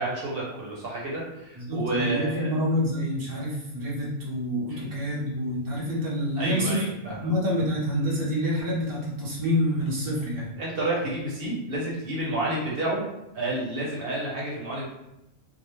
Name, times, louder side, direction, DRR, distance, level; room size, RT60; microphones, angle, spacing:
voice 1, 0.0-2.6 4.7-4.9 6.4-7.2 10.6-13.0 13.3-14.9, right 1 dB, 55° right, -5 dB, 0.9 m, -30 dB
voice 2, 1.6-10.5, equal, 20° right, -6 dB, 0.6 m, -27 dB
2.4 x 2.1 x 3.1 m, 0.92 s
omnidirectional pair, 1.2 m